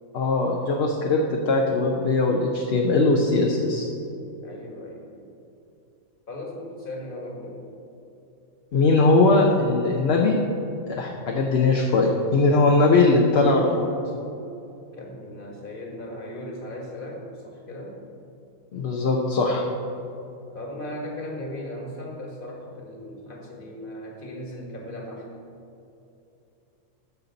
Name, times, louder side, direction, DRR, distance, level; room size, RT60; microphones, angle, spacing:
voice 1, 0.1-3.9 8.7-10.4 10.9-13.9 18.7-19.6, left 3 dB, 55° left, 0 dB, 0.9 m, -20 dB
voice 2, 4.4-5.3 6.3-7.6 14.9-18.0 20.5-25.3, left 1 dB, 40° left, -1 dB, 1.7 m, -37 dB
14.0 x 5.6 x 4.0 m, 2.8 s
omnidirectional pair, 1.4 m